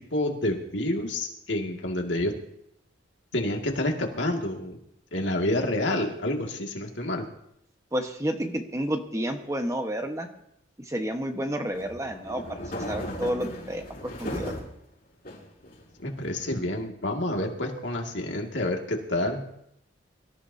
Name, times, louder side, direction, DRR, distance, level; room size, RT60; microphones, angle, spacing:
voice 1, 0.1-2.3 3.3-4.8 5.1-7.2 16.0-19.4, left 1 dB, 75° left, 2 dB, 2.2 m, -28 dB
voice 2, 7.9-10.3 10.8-14.5, equal, 15° right, 4 dB, 1.3 m, -30 dB
sound 1, 11.7-14.7 15.2-16.1, left 1 dB, 50° left, 6.1 m, -36 dB
24.5 x 14.0 x 2.8 m, 0.75 s
head